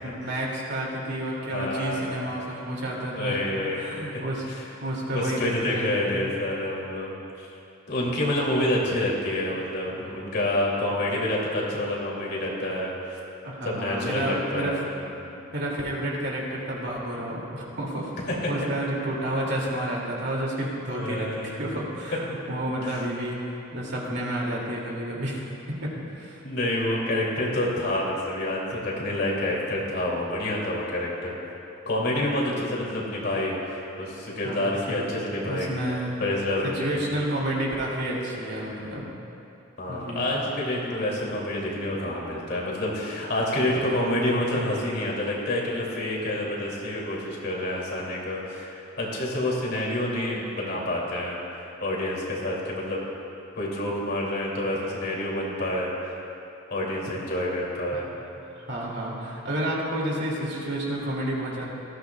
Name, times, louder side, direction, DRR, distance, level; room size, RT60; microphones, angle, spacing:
voice 1, 0.0-3.4 3.7-4.5 4.8-6.3 13.4-14.8 15.5-18.1 18.5-25.4 25.8-26.4 34.4-34.7 35.4-36.2 36.6-39.1 39.9-40.3 57.9-58.0 58.7-61.7, right 1 dB, 60° right, -3 dB, 2.6 m, -30 dB
voice 2, 1.5-2.3 3.2-4.2 4.5-4.6 5.1-7.1 7.4-7.5 7.9-13.2 13.6-15.4 18.3-18.7 20.9-21.7 22.3-22.4 22.8-23.0 26.4-31.3 31.9-35.7 36.2-37.0 39.8-53.0 53.5-56.1 56.7-58.1, left 1 dB, 55° left, -4 dB, 2.7 m, -28 dB
19.0 x 14.0 x 2.4 m, 2.8 s
head